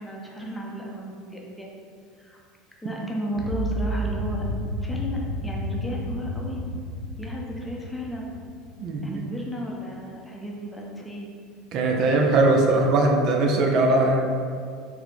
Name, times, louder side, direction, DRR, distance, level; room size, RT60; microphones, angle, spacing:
voice 1, 0.0-1.7 2.2-2.4 2.8-4.4 4.8-6.6 7.2-8.4 9.0-11.3, equal, 10° left, -2 dB, 0.7 m, -34 dB
sound 1, 3.3-9.4, equal, 70° right, 0.8 m, -31 dB
voice 2, 8.8-9.2 11.7-14.2, right 2 dB, 50° right, 1 dB, 0.5 m, -20 dB
4.3 x 2.1 x 4.2 m, 2.1 s
supercardioid pair, 115°, 0 cm